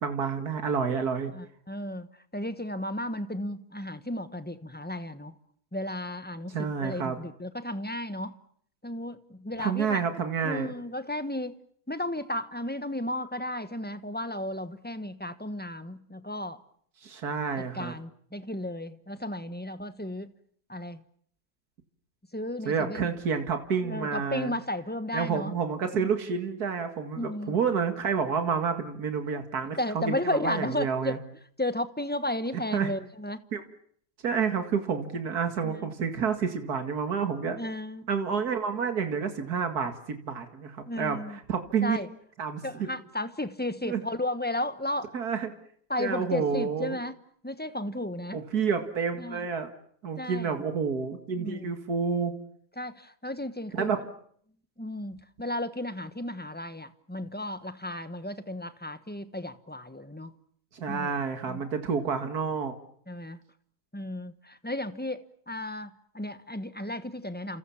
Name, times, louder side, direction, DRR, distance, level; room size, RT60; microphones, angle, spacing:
voice 1, 0.0-1.3 6.5-7.2 9.6-10.7 17.0-17.9 22.7-24.5 25.1-31.2 32.7-32.9 33.5-33.6 34.2-37.6 38.1-42.0 42.4-42.9 43.9-44.0 45.1-45.5 46.0-47.0 48.3-49.7 50.0-52.3 53.7-54.0 60.7-62.7, right 6 dB, 75° right, 2.5 m, -29 dB
voice 2, 1.3-5.3 5.7-8.4 8.8-10.0 10.4-11.6 11.9-16.6 17.7-20.3 20.7-21.0 22.3-23.1 23.8-25.5 25.9-26.1 27.2-27.6 29.8-31.2 31.6-33.4 35.6-35.9 37.6-38.0 40.9-41.4 41.8-42.1 42.6-45.2 45.9-47.1 47.4-48.4 49.2-49.5 50.2-50.6 51.4-51.7 52.8-54.0 54.8-60.3 60.9-61.1 61.5-61.6 63.1-63.4 63.9-67.6, left 1 dB, 5° left, 1.2 m, -34 dB
29.5 x 27.0 x 7.2 m
omnidirectional pair, 1.7 m